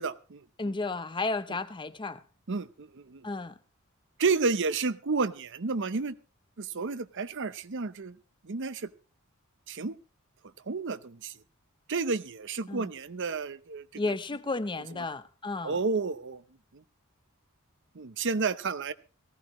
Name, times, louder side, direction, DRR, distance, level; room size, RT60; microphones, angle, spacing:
voice 1, 0.0-0.4 2.5-3.3 4.2-6.1 6.6-8.2 8.4-8.9 9.7-9.9 10.7-11.3 11.9-14.1 15.6-16.4 16.7-16.8 17.9-18.9, right 4 dB, 55° right, 0.7 m, -31 dB
voice 2, 0.6-2.2 3.2-3.6 12.7-12.9 14.0-15.8, left 3 dB, 20° left, 0.7 m, -33 dB
18.5 x 15.0 x 3.1 m
head